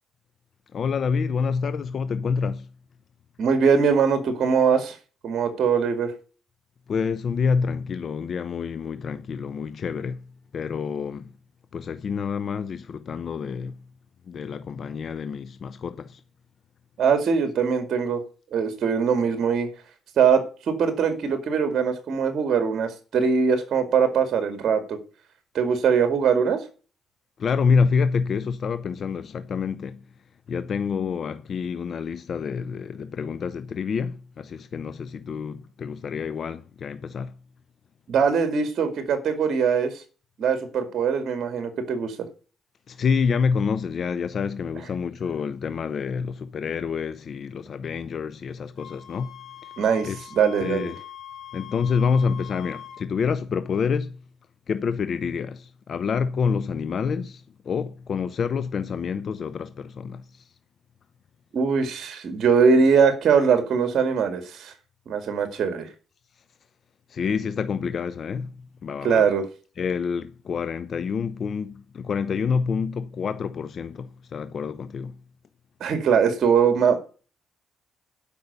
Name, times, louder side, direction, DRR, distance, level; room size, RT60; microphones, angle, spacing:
voice 1, 0.7-2.7 6.9-10.3 10.5-11.3 11.7-13.8 14.3-16.2 27.4-30.0 30.5-37.3 42.9-49.3 50.0-50.3 50.6-50.9 51.5-54.2 54.7-60.5 67.1-68.5 68.8-69.2 69.8-75.2, left 5 dB, 55° left, 0.7 m, -27 dB
voice 2, 3.4-5.0 5.2-6.1 17.0-18.2 18.5-19.7 20.2-25.0 25.5-26.7 38.1-40.0 40.4-42.3 49.8-50.9 61.5-64.7 65.1-65.9 69.0-69.5 75.8-77.0, right 6 dB, 60° right, 2.2 m, -22 dB
Wind instrument woodwind instrument, 48.8-53.0, left 11 dB, 70° left, 4.6 m, -43 dB
12.0 x 5.6 x 6.7 m
cardioid pair, 90°, 0 cm